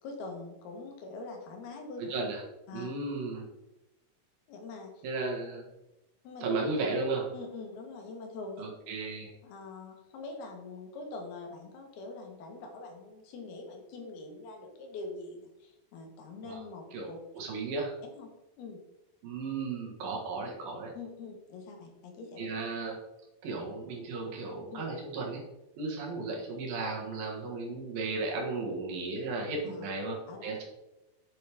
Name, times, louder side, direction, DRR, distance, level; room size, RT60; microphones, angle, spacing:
voice 1, 0.0-2.1 2.7-2.9 4.5-5.1 6.2-6.4 7.3-8.6 9.4-17.2 18.1-18.3 18.6-18.8 20.9-22.5 24.7-24.8 29.6-29.9 30.3-30.5, left 3 dB, 85° left, 2 dB, 3.4 m, -44 dB
voice 2, 2.0-2.4 2.7-3.5 5.0-5.7 6.4-7.3 8.6-9.3 16.4-16.6 16.9-17.1 17.3-17.9 19.2-20.9 22.4-23.0 23.4-25.4 25.8-30.6, right 3 dB, 70° right, -1 dB, 3.4 m, -35 dB
8.4 x 7.9 x 3.6 m, 0.96 s
omnidirectional pair, 4.3 m